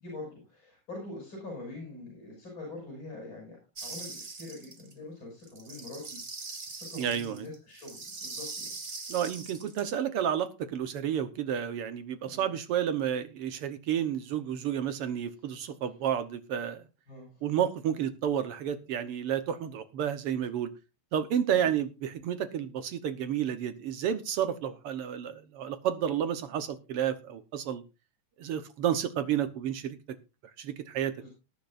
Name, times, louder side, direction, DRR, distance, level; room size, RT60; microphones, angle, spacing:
voice 1, 0.0-8.7 12.2-12.5 17.1-17.6 21.5-21.7 31.2-31.3, left 2 dB, 35° left, -1 dB, 7.5 m, -44 dB
sound 1, 3.8-4.9 5.4-9.8, right 3 dB, 30° right, 1.4 m, -42 dB
voice 2, 6.9-7.4 9.1-16.8 17.4-20.7 21.1-27.8 28.4-30.0 30.6-31.1, right 9 dB, 65° right, 11 dB, 1.5 m, -31 dB
20.0 x 10.5 x 2.5 m, 0.28 s
omnidirectional pair, 3.8 m